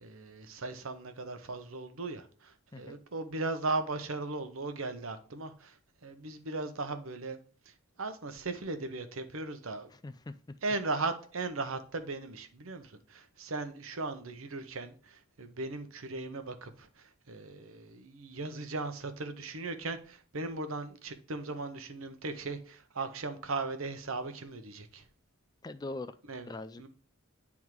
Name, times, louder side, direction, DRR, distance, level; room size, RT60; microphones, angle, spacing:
voice 1, 0.0-5.7 6.0-7.4 8.0-9.9 10.6-25.0 26.3-26.5 26.8-26.9, right 3 dB, 75° right, 0.9 m, -37 dB
voice 2, 9.9-10.6 25.6-26.1 26.5-26.9, left 2 dB, 20° left, 0.3 m, -42 dB
9.3 x 3.6 x 4.7 m
head